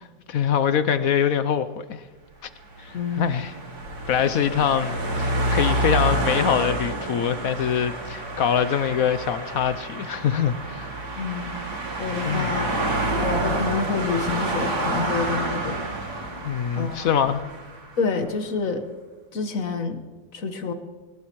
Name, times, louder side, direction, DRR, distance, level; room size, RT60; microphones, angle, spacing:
voice 1, 0.3-2.0 2.4-2.5 2.8-3.6 4.1-10.9 12.3-12.5 16.4-17.4, left 8 dB, 70° left, 12 dB, 0.8 m, -24 dB
sound 1, 2.6-18.0, right 1 dB, 50° right, 2.9 m, -28 dB
voice 2, 2.9-3.3 11.2-11.5 12.0-12.8 13.1-15.8 16.7-17.1 18.0-18.8 19.3-20.0 20.3-20.7, left 4 dB, 45° left, 6 dB, 1.6 m, -28 dB
22.0 x 19.5 x 3.1 m, 1.3 s
omnidirectional pair, 2.1 m